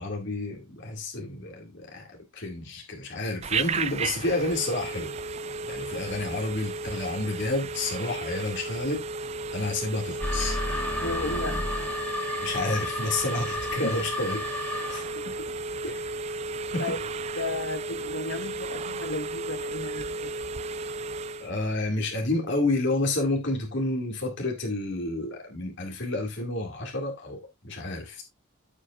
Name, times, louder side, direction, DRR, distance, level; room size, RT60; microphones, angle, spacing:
voice 1, 0.0-5.1 5.7-9.1 9.5-10.6 12.4-14.5 14.9-15.1 16.7-16.9 21.4-28.2, left 2 dB, 55° left, 2.1 m, -30 dB
Telephone, 3.4-21.5, right 3 dB, 30° right, 0.4 m, -34 dB
sound 1, 10.2-15.2, left 2 dB, 10° left, 1.3 m, -32 dB
voice 2, 11.0-11.6 13.8-13.9 15.1-15.2 15.8-16.1 16.8-17.0 17.4-20.3, left 2 dB, 80° left, 1.4 m, -34 dB
15.0 x 5.1 x 2.4 m
head